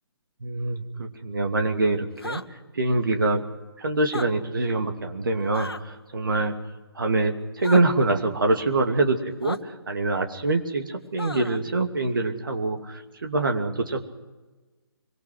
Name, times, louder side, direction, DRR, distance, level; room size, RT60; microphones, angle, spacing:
voice 1, 0.4-3.4 3.8-6.6 6.9-14.0, right 2 dB, 55° right, 4 dB, 2.6 m, -25 dB
sound 1, 2.2-2.5 4.0-4.3 5.5-5.8 7.6-7.8 9.4-9.6 11.2-11.6, left 2 dB, 70° left, 1.5 m, -34 dB
24.5 x 23.5 x 6.2 m, 1.2 s
figure-of-eight pair, 145°, 13 cm